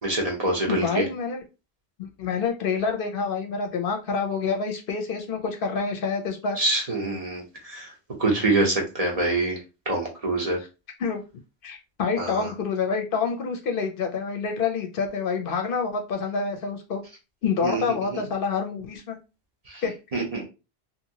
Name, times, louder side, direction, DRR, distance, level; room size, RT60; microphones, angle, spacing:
voice 1, 0.0-1.1 6.6-7.9 8.2-9.6 9.9-10.6 12.2-12.5 17.6-17.8 19.7-19.8 20.1-20.4, right 2 dB, 40° right, 0 dB, 0.8 m, -25 dB
voice 2, 0.7-1.4 2.0-6.6 11.0-11.2 11.6-17.0 17.4-19.2 19.8-20.2, left 5 dB, 65° left, 4 dB, 0.7 m, -27 dB
2.8 x 2.6 x 2.7 m, 0.29 s
omnidirectional pair, 1.1 m